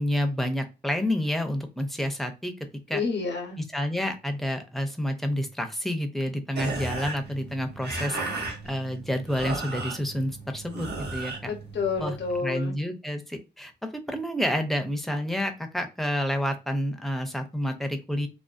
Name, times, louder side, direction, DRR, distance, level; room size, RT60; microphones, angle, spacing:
voice 1, 0.0-2.5 2.9-3.0 3.6-8.2 8.6-11.5 12.0-12.1 12.4-18.3, equal, ahead, 5 dB, 0.4 m, -29 dB
voice 2, 2.9-3.6 11.5-12.8, left 4 dB, 85° left, 2 dB, 0.7 m, -29 dB
sound 1, 6.5-12.4, right 3 dB, 70° right, 0.9 m, -35 dB
2.5 x 2.1 x 2.3 m, 0.29 s
wide cardioid pair, 130°, 18 cm